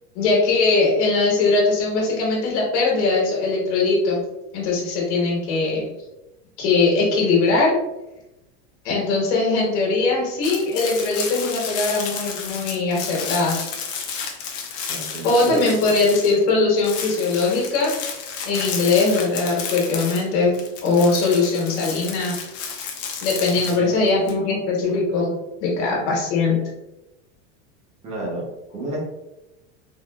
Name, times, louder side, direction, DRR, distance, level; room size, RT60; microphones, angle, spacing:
voice 1, 0.1-4.2 4.5-5.9 6.6-7.7 8.8-13.6 15.2-17.9 18.4-20.5 20.8-22.3 23.2-25.3 25.6-26.6, left 3 dB, 65° left, -3 dB, 1.3 m, -20 dB
sound 1, 10.4-16.5 16.8-24.3, left 6 dB, 45° left, 0.6 m, -32 dB
voice 2, 14.9-15.7 23.5-24.2 28.0-28.4 28.7-29.0, right 2 dB, 20° right, -3 dB, 0.6 m, -30 dB
3.7 x 2.4 x 2.3 m, 0.95 s
supercardioid pair, 170°, 37 cm